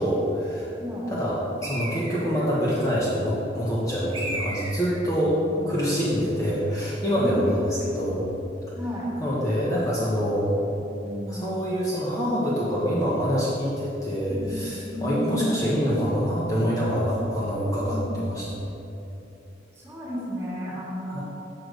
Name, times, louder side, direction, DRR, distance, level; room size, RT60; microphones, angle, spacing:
voice 1, 0.0-0.7 1.1-5.4 5.7-8.2 9.2-10.5 11.3-18.5 21.0-21.2, equal, 20° left, -7 dB, 1.2 m, -25 dB
voice 2, 0.8-1.1 5.2-6.2 7.2-7.6 8.7-9.1 11.0-11.6 14.3-14.6 14.8-15.6 17.0-17.4 17.8-18.2 19.7-21.2, equal, 15° right, -6 dB, 2.0 m, -34 dB
Bird, 1.6-2.5 4.1-5.1, right 1 dB, 30° right, 1.3 m, -34 dB
6.7 x 5.9 x 6.3 m, 2.9 s
head